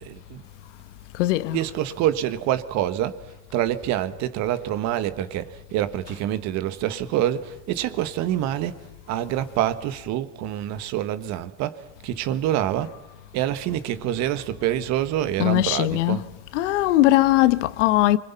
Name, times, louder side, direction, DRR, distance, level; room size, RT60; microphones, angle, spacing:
voice 1, 0.0-0.4 1.5-3.2 3.5-12.9 13.3-16.2, right 12 dB, 45° right, 1.6 m, -26 dB
voice 2, 1.2-1.6 15.4-16.2 16.5-18.2, left 16 dB, 65° left, 1.2 m, -20 dB
25.5 x 24.5 x 5.7 m
hypercardioid pair, 115°, 39 cm